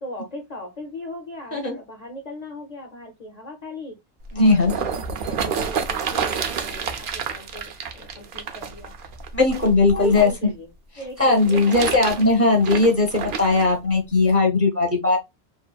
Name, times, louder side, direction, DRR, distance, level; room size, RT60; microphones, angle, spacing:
voice 1, 0.0-3.9 4.4-8.9 9.5-10.7 11.0-11.7 12.1-12.3, left 1 dB, 50° left, 0.5 m, -37 dB
sound 1, 4.2-10.3 11.2-13.7 14.4-14.5, right 6 dB, 60° right, 0.6 m, -29 dB
voice 2, 4.3-4.7 9.3-10.3 11.2-15.2, left 3 dB, 15° right, 0.5 m, -18 dB
2.8 x 2.5 x 2.3 m
omnidirectional pair, 1.2 m